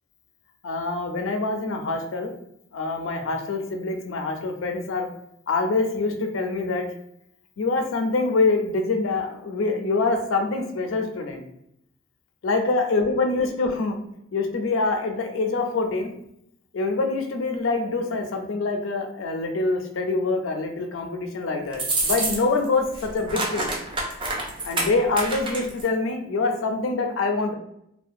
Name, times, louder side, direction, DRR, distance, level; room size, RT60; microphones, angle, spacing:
voice 1, 0.6-2.3 2.7-5.1 5.5-6.9 7.6-11.4 12.4-14.0 14.3-16.1 16.7-23.7 24.6-27.5, left 3 dB, 75° left, 4 dB, 0.4 m, -25 dB
sound 1, 21.7-22.7 22.9-25.9, right 2 dB, 25° right, 0.4 m, -27 dB
2.3 x 2.1 x 2.6 m, 0.77 s
head